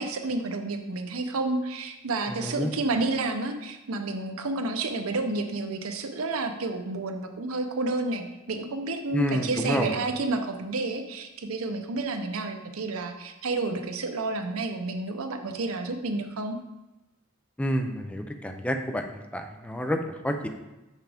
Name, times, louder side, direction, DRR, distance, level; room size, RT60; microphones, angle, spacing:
voice 1, 0.0-16.6, right 3 dB, 80° right, 6 dB, 0.7 m, -30 dB
voice 2, 2.4-2.7 9.1-9.9 17.6-20.5, equal, 5° left, 5 dB, 0.5 m, -29 dB
5.8 x 5.7 x 3.5 m, 1.0 s
head